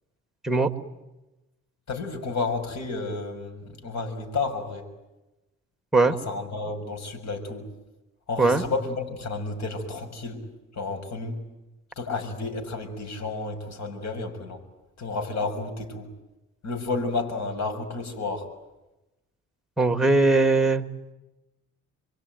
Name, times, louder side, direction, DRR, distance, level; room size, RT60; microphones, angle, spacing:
voice 1, 1.9-4.8 6.3-7.6 8.3-10.4 10.8-11.4 12.0-14.6 15.0-16.1 16.6-18.5, left 3 dB, 65° left, 5 dB, 6.3 m, -31 dB
voice 2, 19.8-20.9, right 3 dB, ahead, 9 dB, 2.2 m, -20 dB
27.5 x 23.0 x 9.3 m, 1.0 s
cardioid pair, 90°, 30 cm